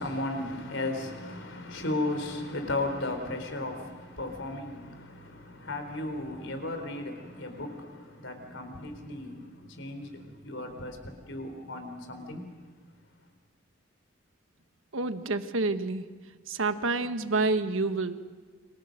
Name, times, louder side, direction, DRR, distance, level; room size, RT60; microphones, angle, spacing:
voice 1, 0.0-12.5, left 2 dB, 65° left, 3.9 m, -35 dB
voice 2, 14.9-16.1 16.5-18.3, right 3 dB, 75° right, 1.3 m, -28 dB
29.5 x 25.5 x 6.6 m
head